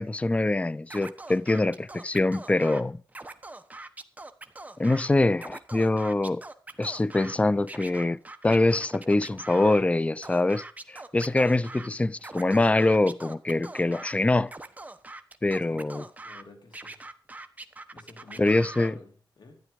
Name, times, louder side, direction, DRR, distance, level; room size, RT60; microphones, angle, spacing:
voice 1, 0.0-3.0 4.8-6.4 6.8-14.5 15.4-16.0 18.4-18.9, left 2 dB, 15° left, 0.5 m, -24 dB
Scratching (performance technique), 0.9-2.8 3.1-5.1 5.4-7.4 7.7-9.8 10.2-11.9 12.2-14.1 14.5-16.4 16.7-18.9, right 2 dB, 20° right, 1.2 m, -43 dB
voice 2, 16.2-17.0 17.9-19.6, left 3 dB, 60° left, 2.9 m, -50 dB
13.0 x 10.0 x 5.2 m
wide cardioid pair, 90°, 8 cm